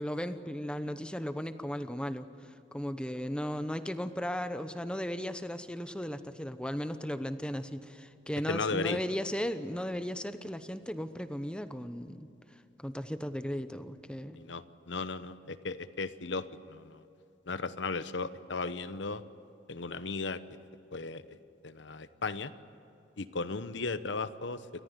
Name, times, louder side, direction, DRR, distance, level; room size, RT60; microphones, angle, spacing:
voice 1, 0.0-12.3 12.8-14.4, equal, 5° left, 10 dB, 0.9 m, -36 dB
voice 2, 8.5-9.0 14.4-17.0 17.5-19.2 19.7-20.4 20.9-21.4 21.6-22.5 23.2-24.6, left 3 dB, 80° left, 13 dB, 1.0 m, -36 dB
29.0 x 14.0 x 9.8 m, 2.9 s
head